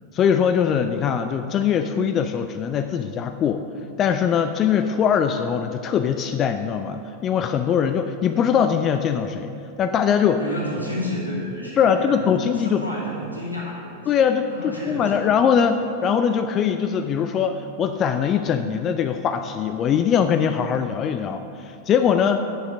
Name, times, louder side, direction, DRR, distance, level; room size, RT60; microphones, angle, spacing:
voice 1, 0.1-3.6 4.0-10.4 11.8-12.8 14.1-22.5, left 7 dB, 30° left, 9 dB, 0.4 m, -21 dB
voice 2, 10.4-13.9 14.5-15.3, left 1 dB, 90° left, -7 dB, 2.6 m, -31 dB
9.1 x 7.1 x 6.1 m, 2.6 s
figure-of-eight pair, 90°, 0 cm